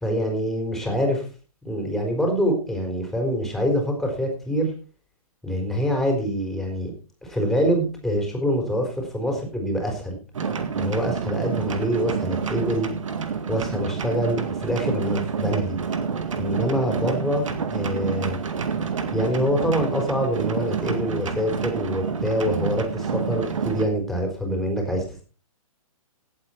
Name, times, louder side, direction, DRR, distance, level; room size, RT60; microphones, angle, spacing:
voice 1, 0.0-1.2 1.6-4.7 5.4-6.9 7.2-10.1 10.8-12.9 13.5-15.8 16.4-18.4 19.1-25.2, equal, ahead, 1 dB, 4.1 m, -25 dB
sound 1, 10.3-23.9, right 6 dB, 60° right, 2.0 m, -28 dB
17.5 x 8.2 x 4.4 m, 0.36 s
figure-of-eight pair, 125°, 19 cm